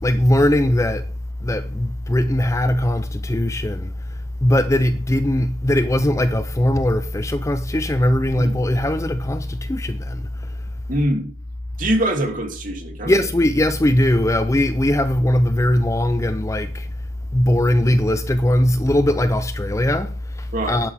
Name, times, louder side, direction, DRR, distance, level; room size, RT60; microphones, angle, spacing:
voice 1, 0.0-1.1 1.4-10.7 13.0-16.9 17.3-20.9, left 1 dB, 15° left, 0.4 m, -20 dB
voice 2, 10.9-11.3 11.8-13.2 20.5-20.8, right 1 dB, 40° right, 2.8 m, -23 dB
13.0 x 11.0 x 3.5 m
head